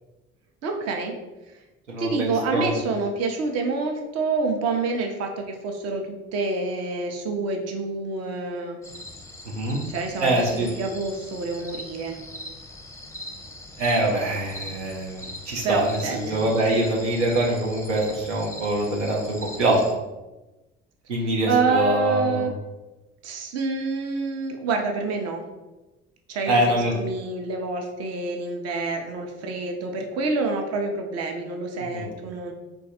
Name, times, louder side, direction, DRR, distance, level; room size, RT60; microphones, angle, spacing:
voice 1, 0.6-1.1 1.5-1.6 2.0-8.8 9.9-12.2 15.6-16.4 21.4-22.5 23.2-25.4 26.3-32.5, right 3 dB, 45° right, 3 dB, 0.7 m, -27 dB
voice 2, 1.9-2.8 9.4-9.8 10.2-10.7 13.8-19.8 21.1-22.5 26.5-26.9 31.9-32.1, right 1 dB, 85° right, -2 dB, 0.6 m, -24 dB
sound 1, 8.8-19.9, left 1 dB, 10° left, 0.5 m, -41 dB
3.3 x 2.3 x 4.2 m, 1.1 s
figure-of-eight pair, 55°, 35 cm